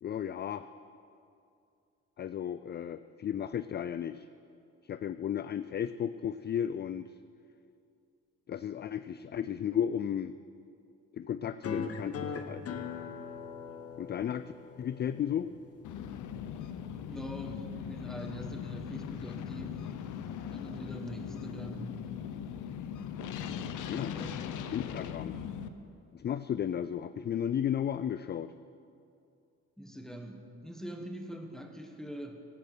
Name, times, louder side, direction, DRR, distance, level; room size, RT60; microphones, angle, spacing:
voice 1, 0.0-0.7 2.2-4.3 4.8-7.1 8.5-10.3 11.2-12.8 14.0-14.4 14.8-15.5 23.9-24.1 24.7-25.4 26.1-28.5, left 9 dB, 35° left, 13 dB, 0.4 m, -34 dB
sound 1, 11.6-16.6, left 5 dB, 50° left, 1.1 m, -41 dB
sound 2, 15.8-25.7, left 8 dB, 80° left, 0.8 m, -39 dB
voice 2, 17.0-19.9 20.5-22.0 24.1-24.3 24.7-24.9 29.8-32.4, equal, ahead, 3 dB, 1.6 m, -43 dB
16.5 x 8.7 x 6.2 m, 2.5 s
cardioid pair, 90°, 30 cm